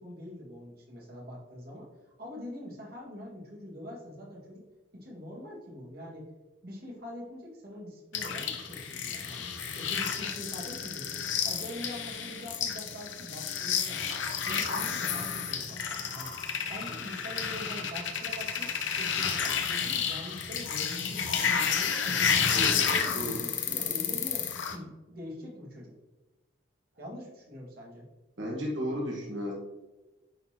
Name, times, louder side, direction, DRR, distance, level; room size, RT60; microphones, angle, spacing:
voice 1, 0.0-4.6 4.9-6.3 6.6-9.5 9.7-14.0 14.4-16.3 16.7-18.7 19.0-22.6 22.9-25.9 27.0-28.0, left 1 dB, 55° right, -3 dB, 1.9 m, -44 dB
sound 1, 8.1-24.8, left 7 dB, 80° left, 0.8 m, -31 dB
voice 2, 22.5-23.4 23.7-24.0 28.4-29.5, equal, 80° right, -2 dB, 1.4 m, -35 dB
9.7 x 4.0 x 2.9 m, 1.1 s
head